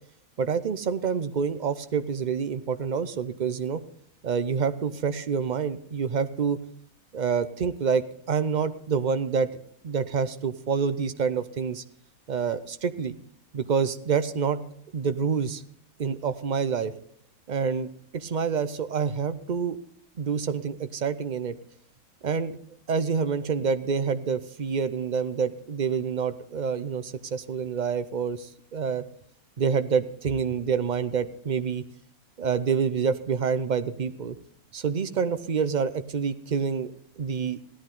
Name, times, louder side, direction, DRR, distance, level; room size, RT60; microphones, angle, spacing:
voice 1, 0.4-3.8 4.2-6.6 7.1-9.5 9.8-11.8 12.3-13.2 13.5-14.6 14.9-15.6 16.0-16.9 17.5-17.9 18.1-19.8 20.2-21.5 22.2-22.6 22.9-29.0 29.6-31.8 32.4-34.4 34.7-37.6, right 6 dB, 45° right, 11 dB, 0.6 m, -27 dB
16.5 x 11.0 x 3.8 m, 0.68 s
omnidirectional pair, 1.6 m